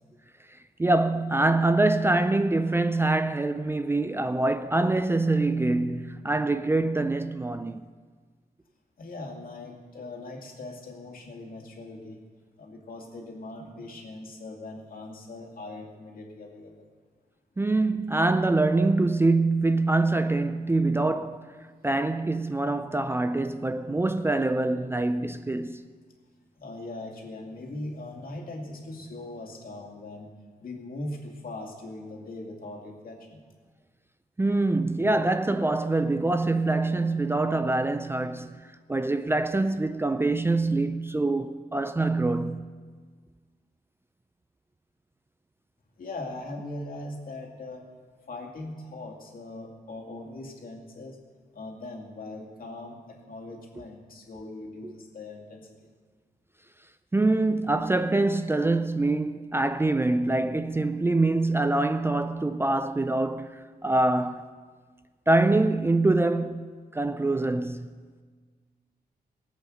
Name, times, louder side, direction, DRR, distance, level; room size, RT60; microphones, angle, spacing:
voice 1, 0.8-7.8 17.6-21.5 21.8-25.9 34.4-42.7 54.8-54.9 57.1-64.5 65.3-68.0, right 2 dB, 15° right, 0.4 m, -25 dB
voice 2, 9.0-12.2 12.6-16.9 26.6-30.3 30.6-33.4 46.0-47.9 48.3-51.2 51.5-55.8, left 2 dB, 60° left, 2.4 m, -40 dB
18.0 x 8.3 x 6.4 m
wide cardioid pair, 120°, 16 cm